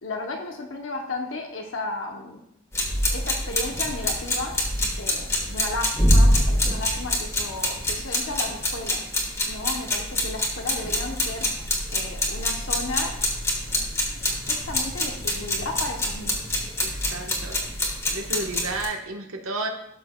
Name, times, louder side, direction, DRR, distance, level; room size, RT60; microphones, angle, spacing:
voice 1, 0.0-2.4 3.1-4.5 5.0-9.1 9.4-13.1 14.5-16.4, left 2 dB, 65° left, 2 dB, 0.9 m, -34 dB
sound 1, 2.7-18.8, left 1 dB, 15° left, 1.4 m, -25 dB
sound 2, 4.0-5.0 6.9-8.1, equal, 25° right, 1.5 m, -43 dB
voice 2, 17.1-17.6 18.1-19.7, right 2 dB, 80° right, 2 dB, 1.2 m, -31 dB
12.5 x 6.8 x 2.3 m, 0.77 s
head